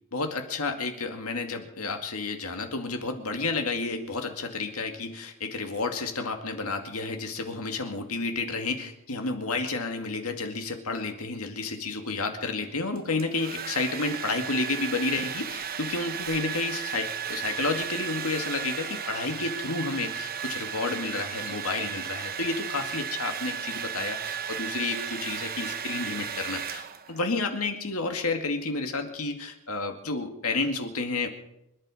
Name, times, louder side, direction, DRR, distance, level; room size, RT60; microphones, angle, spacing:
voice 1, 0.1-31.3, left 3 dB, 75° left, 5 dB, 2.3 m, -31 dB
Domestic sounds home sounds, 13.0-27.2, right 7 dB, 45° right, 1.1 m, -35 dB
25.5 x 10.5 x 5.0 m, 0.85 s
head